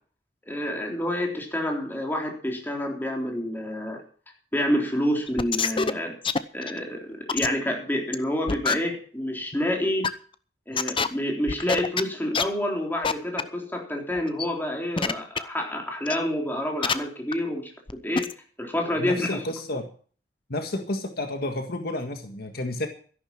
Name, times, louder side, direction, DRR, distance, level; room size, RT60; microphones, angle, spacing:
voice 1, 0.5-4.0 4.5-6.2 6.5-10.1 10.7-17.7 18.0-18.3 18.6-19.4, left 1 dB, 10° left, 0 dB, 3.7 m, -28 dB
sound 1, 5.3-5.9 6.2-6.8 7.3-7.5 8.1-8.2 8.5-8.7 9.5-9.6 10.0-10.1 10.7-11.1 11.5-12.0 12.3-12.4 13.0-13.1 13.4-13.5 14.1-14.5 15.0-15.4 16.1-16.2 16.8-16.9 17.3-17.4 17.9-18.0 18.2-18.3, left 5 dB, 30° left, 0.8 m, -24 dB
voice 2, 19.0-19.9 20.5-22.9, left 1 dB, 60° left, 5 dB, 1.8 m, -31 dB
13.0 x 11.5 x 6.0 m, 0.43 s
head